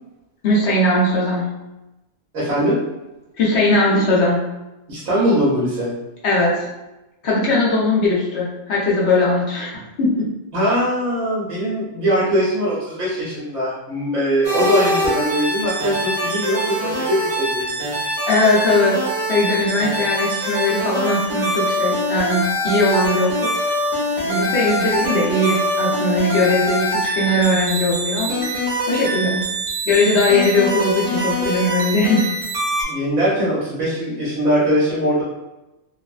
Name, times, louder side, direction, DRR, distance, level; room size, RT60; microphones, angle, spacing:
voice 1, 0.4-1.5 3.4-4.5 6.2-6.7 7.2-10.1 18.3-19.0 19.3-23.5 24.3-28.4 28.9-29.4 29.8-32.3, left 2 dB, 60° left, -6 dB, 1.0 m, -19 dB
voice 2, 2.3-2.8 4.9-5.9 10.5-17.8 32.8-35.2, equal, 90° right, -9 dB, 1.3 m, -21 dB
sound 1, 14.4-32.8, equal, 50° right, 0.9 m, -23 dB
3.0 x 2.0 x 2.4 m, 1.0 s
omnidirectional pair, 1.4 m